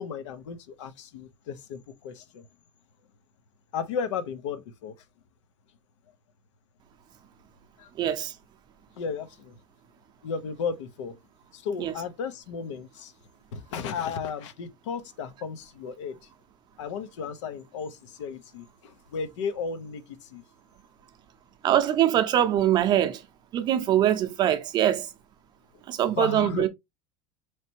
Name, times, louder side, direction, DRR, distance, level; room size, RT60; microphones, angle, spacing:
voice 1, 0.0-2.5 3.7-4.9 7.8-7.9 9.0-9.6 10.2-11.2 11.5-13.1 13.5-16.3 16.8-20.4 26.2-26.7, left 6 dB, 90° left, 0.7 m, -34 dB
voice 2, 8.0-8.3 11.8-11.9 21.6-23.2 23.5-25.1 25.9-26.7, right 11 dB, 30° right, 0.6 m, -23 dB
4.2 x 3.3 x 2.7 m
supercardioid pair, 160°, 15 cm